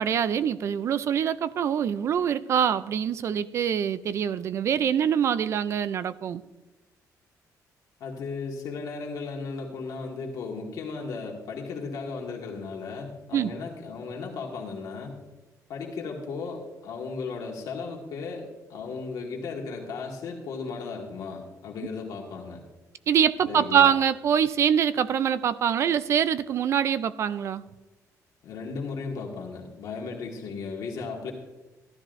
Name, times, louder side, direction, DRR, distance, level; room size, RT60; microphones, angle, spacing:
voice 1, 0.0-6.4 13.3-13.5 23.1-27.6, right 8 dB, 45° right, 15 dB, 0.4 m, -24 dB
voice 2, 8.0-15.2 15.7-22.6 23.5-23.9 28.4-31.3, left 4 dB, 70° left, -1 dB, 1.7 m, -35 dB
15.0 x 12.5 x 2.6 m, 1.1 s
cardioid pair, 175°, 6 cm